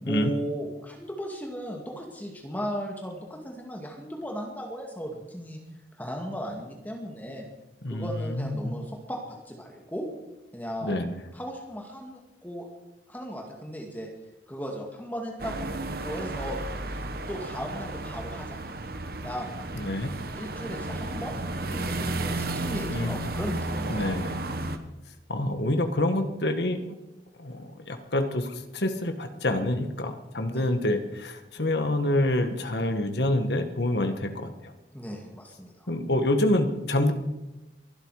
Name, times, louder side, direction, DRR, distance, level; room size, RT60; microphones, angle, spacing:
voice 1, 0.0-5.6 6.0-7.4 7.9-10.1 10.5-11.0 11.3-12.7 13.1-14.1 14.5-15.6 16.0-16.6 17.3-18.6 19.2-19.5 20.4-21.3 21.6-24.0 30.5-30.7 34.9-35.9, equal, 10° left, 1 dB, 2.0 m, -36 dB
voice 2, 7.8-8.7 10.8-11.2 19.8-20.1 22.9-23.2 23.9-24.3 25.3-26.8 27.4-34.7 35.9-37.1, left 1 dB, 70° left, 7 dB, 1.7 m, -27 dB
sound 1, 15.4-24.8, right 2 dB, 55° right, 1.2 m, -33 dB
22.5 x 12.0 x 4.9 m, 1.0 s
head